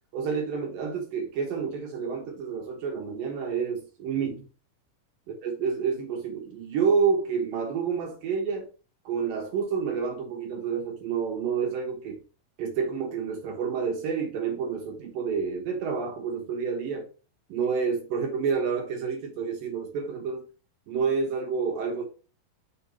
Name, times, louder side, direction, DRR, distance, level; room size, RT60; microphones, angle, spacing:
voice 1, 0.1-4.5 5.4-8.7 9.0-12.2 12.6-17.1 17.5-20.4 20.9-22.0, right 6 dB, 70° right, 2.9 m, -29 dB
6.0 x 4.4 x 5.3 m
omnidirectional pair, 4.2 m